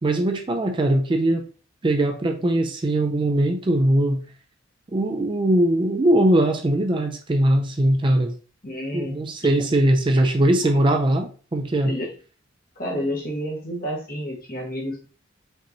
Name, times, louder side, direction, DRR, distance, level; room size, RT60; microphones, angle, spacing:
voice 1, 0.0-1.4 1.8-4.2 4.9-8.3 8.9-12.0, right 1 dB, 25° right, 5 dB, 0.4 m, -20 dB
voice 2, 8.6-9.2 10.6-10.7 11.8-12.1 12.8-15.1, equal, 45° left, -2 dB, 1.4 m, -30 dB
5.2 x 2.9 x 2.7 m, 0.38 s
head